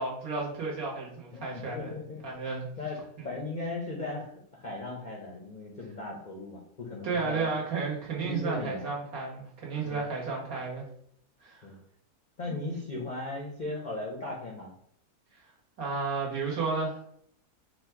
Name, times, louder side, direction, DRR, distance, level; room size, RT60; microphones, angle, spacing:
voice 1, 0.0-1.9 2.2-2.7 7.0-10.8 11.4-11.7 12.5-12.6 15.3-15.4 15.8-17.0, right 4 dB, 65° right, -3 dB, 1.7 m, -32 dB
voice 2, 1.3-2.2 2.8-7.5 8.2-8.9 9.8-10.1 11.6-11.8 12.4-14.7, left 2 dB, 50° left, -2 dB, 0.5 m, -37 dB
4.2 x 2.3 x 4.4 m, 0.67 s
omnidirectional pair, 1.7 m